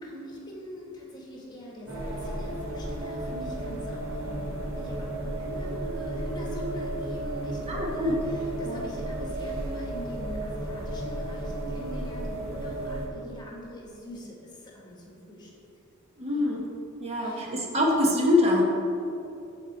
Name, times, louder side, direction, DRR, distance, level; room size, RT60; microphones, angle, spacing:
voice 1, 0.0-15.5 16.3-16.5 17.2-17.6, equal, 20° left, -3 dB, 1.7 m, -43 dB
sound 1, 1.9-13.1, right 1 dB, 85° right, 2.3 m, -33 dB
voice 2, 7.7-8.2 8.6-8.8 16.2-16.7 17.0-18.6, left 1 dB, 30° right, -1 dB, 1.4 m, -24 dB
14.5 x 4.9 x 4.2 m, 2.8 s
head